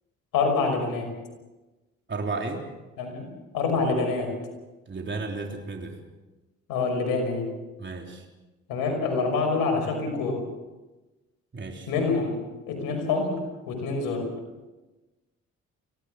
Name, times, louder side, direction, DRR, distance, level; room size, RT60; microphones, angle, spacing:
voice 1, 0.3-1.1 3.0-4.4 6.7-7.5 8.7-10.4 11.9-14.3, left 4 dB, 80° left, 4 dB, 5.7 m, -26 dB
voice 2, 2.1-2.7 4.9-6.0 7.8-8.3 11.5-11.9, right 3 dB, 35° right, 2 dB, 3.5 m, -33 dB
24.5 x 17.0 x 6.4 m, 1.1 s
supercardioid pair, 60°, 33 cm